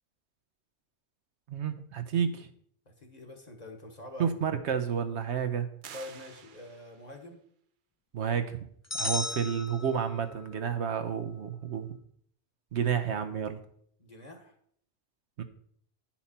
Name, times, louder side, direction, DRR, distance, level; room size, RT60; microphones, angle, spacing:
voice 1, 1.5-2.5 4.2-5.7 8.1-8.6 9.0-11.9 12.7-13.6 15.4-15.5, right 7 dB, 70° right, 9 dB, 1.0 m, -30 dB
voice 2, 2.8-4.4 5.9-7.4 14.0-14.5, left 1 dB, 35° left, 3 dB, 1.4 m, -45 dB
sound 1, 5.8-7.2, right 7 dB, 55° right, 0.7 m, -49 dB
sound 2, 8.9-10.5, left 2 dB, 15° left, 0.6 m, -35 dB
10.0 x 5.9 x 4.2 m, 0.64 s
omnidirectional pair, 1.2 m